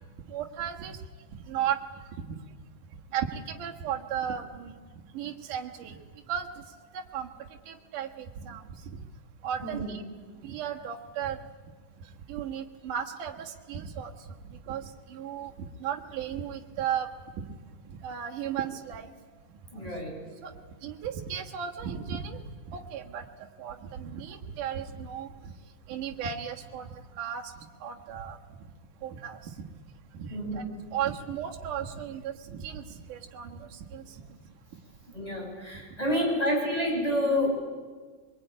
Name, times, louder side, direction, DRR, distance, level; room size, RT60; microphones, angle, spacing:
voice 1, 0.3-1.0 1.5-1.8 2.1-2.2 3.1-4.7 5.1-6.0 6.3-6.6 6.9-7.3 7.7-9.0 9.4-10.0 10.4-11.4 12.3-14.1 14.5-17.1 17.4-17.5 17.9-19.1 20.4-20.5 20.8-22.4 22.7-23.2 23.6-25.5 25.9-27.4 27.8-28.4 29.0-29.4 30.1-30.6 30.9-34.1, right 9 dB, 75° right, 2 dB, 3.0 m, -35 dB
voice 2, 9.6-10.0 19.7-20.1 30.3-30.7 35.1-37.6, equal, 10° left, -1 dB, 6.6 m, -28 dB
23.5 x 21.5 x 10.0 m, 1.5 s
omnidirectional pair, 3.7 m